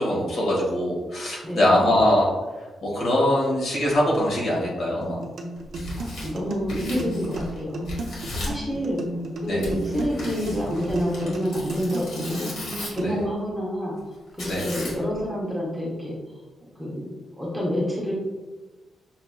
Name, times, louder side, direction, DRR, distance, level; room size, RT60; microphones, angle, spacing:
voice 1, 0.0-2.3 2.8-5.2 9.5-9.7 13.0-13.2 14.5-14.7, left 1 dB, 55° left, -4 dB, 1.2 m, -22 dB
voice 2, 1.4-1.9 6.0-8.1 8.5-9.0 9.4-12.5 12.9-14.0 14.4-18.2, equal, 5° right, -5 dB, 0.7 m, -28 dB
sound 1, 5.0-13.0, right 2 dB, 55° right, 0.5 m, -34 dB
Tearing, 5.6-7.6 7.8-8.6 9.6-13.1 14.4-15.2, left 1 dB, 80° left, 1.5 m, -36 dB
6.0 x 2.7 x 2.2 m, 1.2 s
wide cardioid pair, 175°, 0 cm